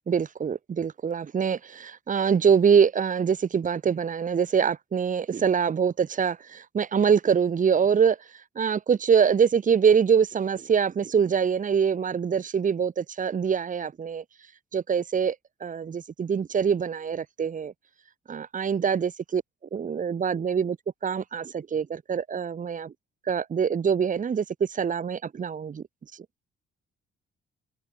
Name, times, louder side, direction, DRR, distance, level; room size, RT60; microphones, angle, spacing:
voice 1, 0.1-8.2 8.5-14.2 14.7-15.3 15.6-17.7 18.3-19.4 19.7-20.8 21.0-22.9 23.3-25.8, right 7 dB, 40° right, 1.6 m, -24 dB
cardioid pair, 90°, 20 cm